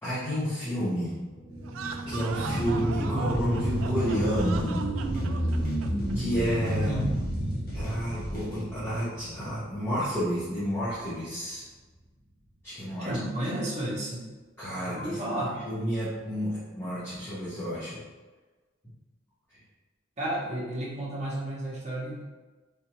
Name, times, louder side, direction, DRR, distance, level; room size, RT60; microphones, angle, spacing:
voice 1, 0.0-1.1 2.1-4.8 6.1-7.0 7.7-11.6 12.6-13.1 14.6-15.2 15.7-18.0, equal, 10° left, -12 dB, 0.9 m, -30 dB
sound 1, 1.3-10.4 10.8-10.9, right 1 dB, 10° right, 1.0 m, -31 dB
sound 2, 1.6-7.1, right 5 dB, 75° right, 0.3 m, -40 dB
sound 3, 3.3-8.6, equal, 45° left, 0.8 m, -40 dB
voice 2, 6.8-7.1 13.0-14.3 14.8-15.6 20.2-22.2, right 1 dB, 35° right, -6 dB, 1.0 m, -32 dB
3.5 x 2.6 x 2.9 m, 1.3 s
head